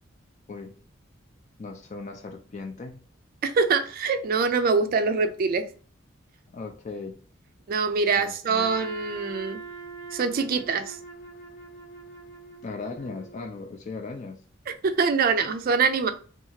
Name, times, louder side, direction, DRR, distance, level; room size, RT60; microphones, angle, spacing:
voice 1, 1.6-3.0 6.5-7.2 8.2-8.7 12.6-14.4, left 3 dB, 40° left, 0.4 m, -37 dB
voice 2, 3.4-5.7 7.7-9.6 10.1-11.0 14.7-16.1, right 4 dB, 50° right, 0.4 m, -24 dB
Trumpet, 8.6-13.6, right 3 dB, 85° left, 1.1 m, -42 dB
2.8 x 2.4 x 2.7 m
head